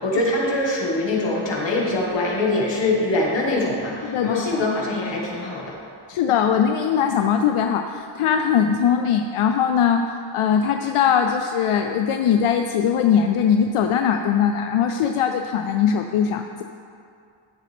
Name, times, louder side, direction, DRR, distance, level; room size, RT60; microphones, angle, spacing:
voice 1, 0.0-5.8, left 2 dB, 60° left, -3 dB, 2.0 m, -23 dB
voice 2, 4.0-4.6 6.1-10.1 10.3-16.6, left 8 dB, 85° left, 5 dB, 0.6 m, -20 dB
13.5 x 7.5 x 3.5 m, 2.4 s
wide cardioid pair, 145°, 50 cm